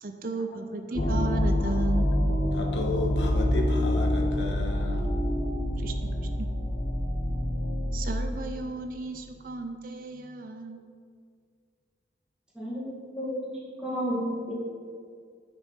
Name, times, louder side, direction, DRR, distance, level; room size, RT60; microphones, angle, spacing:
voice 1, 0.0-2.1 5.8-6.5 7.9-10.8, right 3 dB, 50° right, 5 dB, 0.6 m, -35 dB
sound 1, 1.0-8.2, left 1 dB, 45° left, 1.2 m, -26 dB
voice 2, 2.5-5.1, left 2 dB, 85° left, 1 dB, 1.3 m, -33 dB
voice 3, 12.5-13.5 13.8-14.5, equal, 5° right, -7 dB, 2.2 m, -32 dB
9.2 x 5.4 x 5.5 m, 2.1 s
head